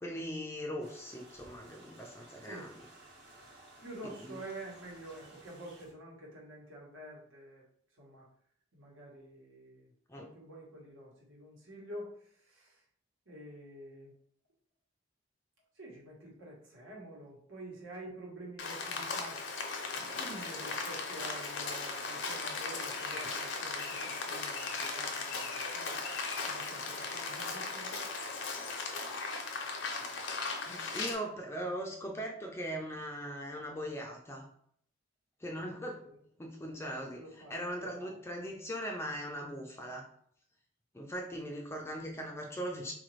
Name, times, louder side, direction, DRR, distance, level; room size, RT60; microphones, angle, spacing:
voice 1, 0.0-2.7 4.2-4.4 10.1-10.3 23.2-23.3 30.7-34.5 35.4-36.0 36.4-37.2 37.5-40.0 40.9-42.9, equal, 15° left, 0 dB, 0.4 m, -40 dB
sound 1, 0.8-5.9, right 1 dB, 55° right, 0.9 m, -56 dB
voice 2, 2.4-2.7 3.8-7.6 7.9-8.3 8.7-12.8 13.3-14.1 15.7-19.5 19.9-26.0 26.4-28.1 36.0-36.2 37.1-38.1, right 1 dB, 85° right, -2 dB, 1.2 m, -48 dB
Rain, 18.6-31.1, left 4 dB, 65° left, 0.6 m, -37 dB
3.8 x 2.5 x 3.1 m, 0.64 s
head